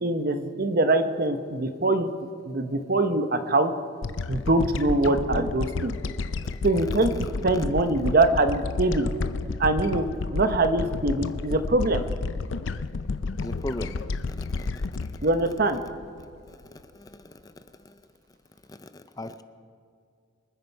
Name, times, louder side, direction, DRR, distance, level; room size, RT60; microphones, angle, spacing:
voice 1, 0.0-2.1 2.5-3.7 4.3-6.0 6.6-7.1 7.4-9.1 9.6-10.1 10.3-12.0 15.2-15.8, right 2 dB, 50° right, 8 dB, 0.9 m, -23 dB
sound 1, 4.0-16.5, left 3 dB, 90° left, 0.5 m, -31 dB
voice 2, 13.4-13.9 14.3-14.9 16.7-16.8 17.4-17.5 18.7-19.4, left 1 dB, 20° left, 10 dB, 0.5 m, -37 dB
25.5 x 9.6 x 4.6 m, 2.3 s
head